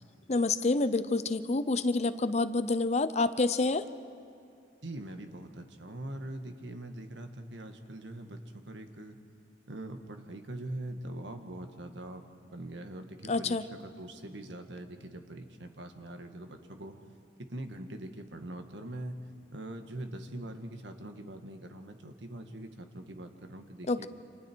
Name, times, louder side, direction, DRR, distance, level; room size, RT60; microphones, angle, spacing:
voice 1, 0.3-3.8 13.3-13.6 23.9-24.1, left 3 dB, 40° left, 13 dB, 0.7 m, -28 dB
voice 2, 4.8-9.2 9.7-17.0 17.4-19.2 19.5-24.1, right 1 dB, 75° right, 6 dB, 1.7 m, -43 dB
29.0 x 27.0 x 4.6 m, 2.6 s
head